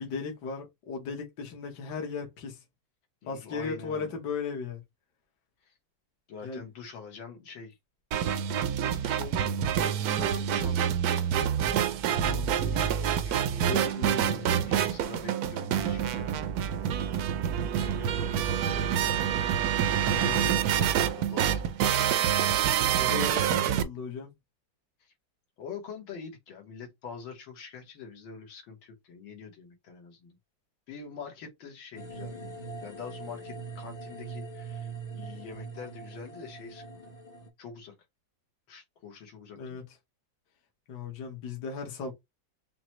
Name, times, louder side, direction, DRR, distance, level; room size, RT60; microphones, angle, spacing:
voice 1, 0.0-2.6 3.3-4.8 6.4-6.6 12.1-12.9 13.6-14.5 20.0-20.4 22.7-24.3 39.6-39.8 40.9-42.1, left 5 dB, 65° left, 1.6 m, -37 dB
voice 2, 3.2-4.1 5.6-5.7 6.3-7.8 8.8-9.7 10.0-11.0 12.7-16.4 17.7-19.6 20.0-22.0 25.0-25.1 25.6-30.4 30.9-34.9 35.1-37.0 37.6-37.9 38.7-39.8, left 5 dB, 85° left, 2.0 m, -45 dB
sound 1, 8.1-23.8, right 9 dB, 75° right, 0.8 m, -27 dB
sound 2, 32.0-37.5, right 4 dB, 45° left, 0.5 m, -42 dB
5.9 x 2.1 x 3.0 m
omnidirectional pair, 2.1 m